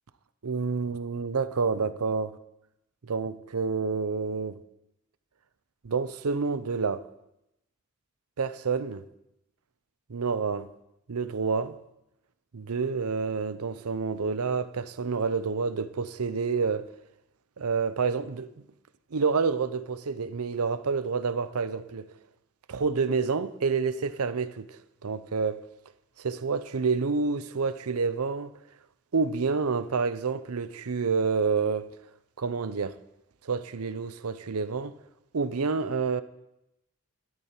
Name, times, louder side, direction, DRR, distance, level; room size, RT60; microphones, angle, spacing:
voice 1, 0.4-2.4 3.0-4.6 5.8-7.1 8.4-9.0 10.1-10.7 11.1-11.8 12.5-16.9 17.6-18.5 19.1-22.1 22.7-25.6 26.2-28.5 29.1-31.9 32.4-32.9 33.4-35.0 35.3-36.2, right 5 dB, 90° right, 0.6 m, -28 dB
12.5 x 12.0 x 4.4 m
head